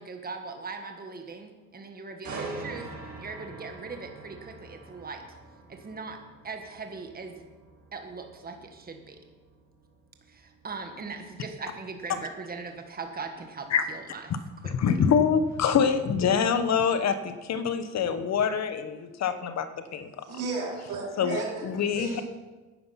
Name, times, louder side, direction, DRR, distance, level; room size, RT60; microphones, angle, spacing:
voice 1, 0.0-2.9 3.2-5.2 5.7-6.2 6.4-7.4 7.9-9.2 10.3-14.3 14.6-14.9, right 4 dB, 30° right, 5 dB, 1.5 m, -40 dB
sound 1, 2.2-16.1 16.5-16.8, right 3 dB, 70° right, 2.9 m, -45 dB
voice 2, 14.7-19.7 19.9-20.2 21.2-22.2, left 7 dB, 60° left, 10 dB, 1.1 m, -25 dB
voice 3, 20.2-21.6 21.9-22.2, right 3 dB, 85° right, -3 dB, 4.1 m, -33 dB
10.5 x 9.5 x 5.8 m, 1.2 s
cardioid pair, 90°, 30 cm